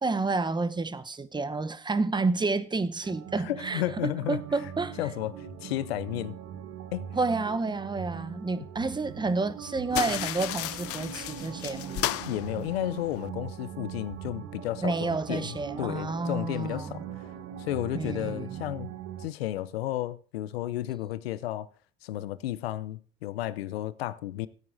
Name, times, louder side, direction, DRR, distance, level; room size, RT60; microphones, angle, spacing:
voice 1, 0.0-5.0 7.1-12.0 14.8-17.0 17.9-18.6, right 3 dB, 15° right, 0.9 m, -30 dB
sound 1, 3.0-19.3, right 9 dB, 55° right, 1.2 m, -41 dB
voice 2, 3.4-4.4 5.0-6.4 6.9-7.1 12.3-17.0 17.6-18.9 19.2-21.7 22.0-24.5, left 14 dB, 90° left, 0.7 m, -33 dB
sound 2, 9.9-13.3, left 14 dB, 50° left, 0.6 m, -34 dB
17.0 x 9.0 x 2.7 m
hypercardioid pair, 75°, 30 cm